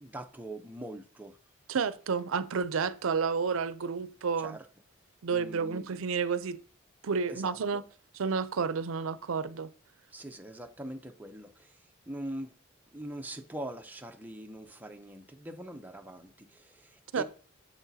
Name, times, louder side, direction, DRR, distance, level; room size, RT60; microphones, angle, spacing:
voice 1, 0.0-1.4 4.4-4.7 5.3-5.9 7.3-7.8 10.1-11.8 12.1-12.5 12.9-17.2, right 1 dB, 10° right, 0.6 m, -42 dB
voice 2, 1.7-4.6 5.2-6.6 7.0-7.8 8.1-9.7 17.1-17.2, right 5 dB, 80° right, 0.5 m, -30 dB
9.9 x 7.1 x 2.7 m
head